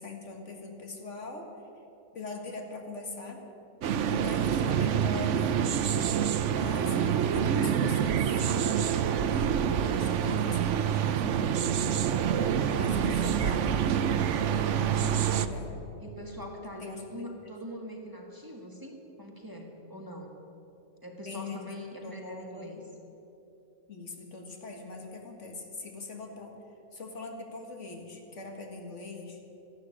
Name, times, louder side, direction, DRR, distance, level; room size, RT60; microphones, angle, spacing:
voice 1, 0.0-1.5 2.1-3.4 4.1-6.1 6.5-8.9 9.2-11.3 12.7-13.6 14.7-15.8 16.8-17.5 21.3-22.9 23.9-26.5 26.9-29.4, left 3 dB, 70° left, 2 dB, 2.1 m, -42 dB
sound 1, 3.8-15.5, right 8 dB, 75° right, 1.0 m, -27 dB
voice 2, 11.2-11.7 16.0-20.4 21.0-22.8, equal, 15° right, 1 dB, 1.8 m, -43 dB
13.5 x 11.5 x 8.7 m, 2.9 s
omnidirectional pair, 1.3 m